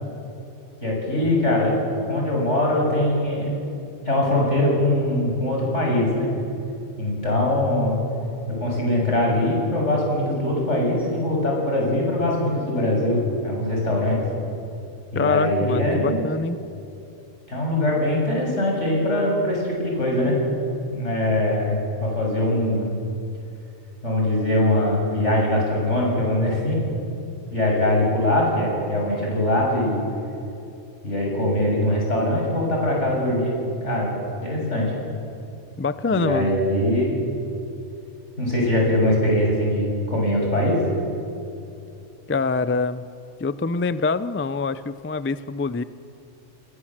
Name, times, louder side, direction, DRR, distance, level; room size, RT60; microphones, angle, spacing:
voice 1, 0.8-1.8 2.1-3.5 4.1-6.3 7.0-8.0 8.5-14.2 15.1-16.3 17.5-20.4 20.9-22.9 24.0-26.8 27.5-30.0 31.0-33.6 33.8-34.1 34.4-34.9 36.1-37.2 38.4-40.8, left 1 dB, 85° left, -2 dB, 7.3 m, -22 dB
voice 2, 15.1-16.6 35.8-36.7 42.3-43.1 43.4-45.8, left 4 dB, 20° left, 14 dB, 0.3 m, -25 dB
30.0 x 21.0 x 7.4 m, 2.6 s
omnidirectional pair, 1.2 m